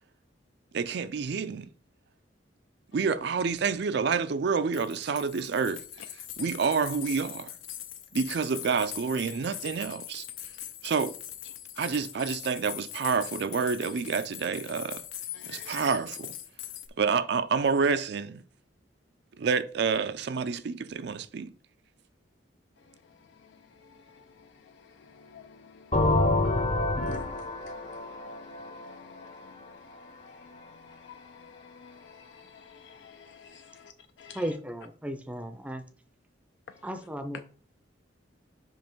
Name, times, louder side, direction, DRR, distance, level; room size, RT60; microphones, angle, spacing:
voice 1, 0.7-1.7 2.9-5.8 6.4-7.5 8.1-10.3 10.8-11.1 11.8-15.0 15.4-16.3 17.0-18.4 19.4-21.5, right 5 dB, 60° right, 0.4 m, -28 dB
sound 1, 4.7-16.9, left 12 dB, 85° left, 0.8 m, -41 dB
voice 2, 15.3-15.7 22.8-33.9 34.2-34.5 36.7-36.8, left 6 dB, 65° left, 0.4 m, -52 dB
sound 2, 25.9-29.6, left 2 dB, 35° left, 0.8 m, -27 dB
voice 3, 34.3-35.8 36.8-37.4, equal, 5° right, 0.5 m, -35 dB
5.4 x 5.2 x 4.5 m
head